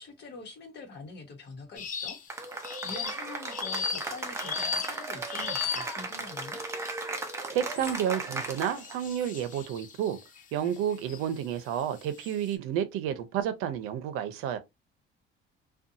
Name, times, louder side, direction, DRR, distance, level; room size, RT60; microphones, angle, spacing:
voice 1, 0.0-6.6, left 3 dB, 55° left, 1.0 m, -45 dB
sound 1, 1.8-2.3 2.6-6.1 6.8-7.2 7.7-11.2 11.8-12.5, left 6 dB, 40° left, 0.5 m, -37 dB
Cheering / Applause, 2.3-9.0, right 2 dB, 15° right, 0.5 m, -36 dB
voice 2, 7.5-10.2 10.5-14.6, right 9 dB, 85° right, 0.6 m, -30 dB
2.6 x 2.2 x 2.5 m
cardioid pair, 135°, 21 cm